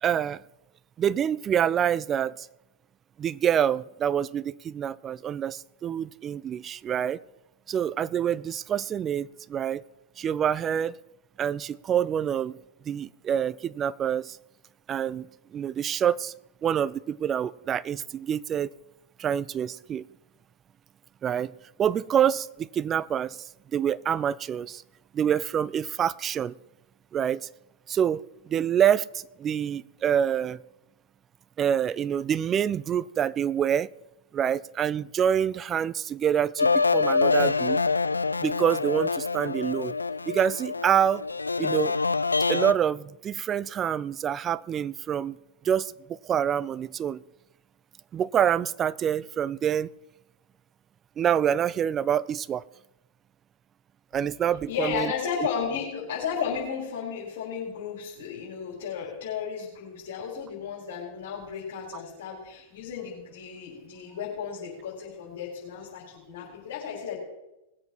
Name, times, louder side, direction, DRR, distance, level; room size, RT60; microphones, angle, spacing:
voice 1, 0.0-0.4 1.0-2.5 3.2-7.2 7.7-9.8 10.2-11.0 11.4-12.6 12.9-14.4 14.9-16.3 16.6-18.7 19.2-20.0 21.2-21.5 21.8-24.8 25.1-26.5 27.1-27.5 27.9-30.6 31.6-33.9 34.3-37.8 38.4-39.9 40.3-41.2 41.6-42.0 42.5-45.4 45.6-47.2 48.1-49.9 51.2-52.6 54.1-55.1, right 9 dB, 25° right, 0.4 m, -26 dB
sound 1, 36.6-42.7, left 4 dB, 80° left, 0.3 m, -25 dB
voice 2, 54.7-67.2, left 7 dB, 55° left, 4.7 m, -34 dB
20.0 x 7.8 x 4.6 m
figure-of-eight pair, 95°, 0 cm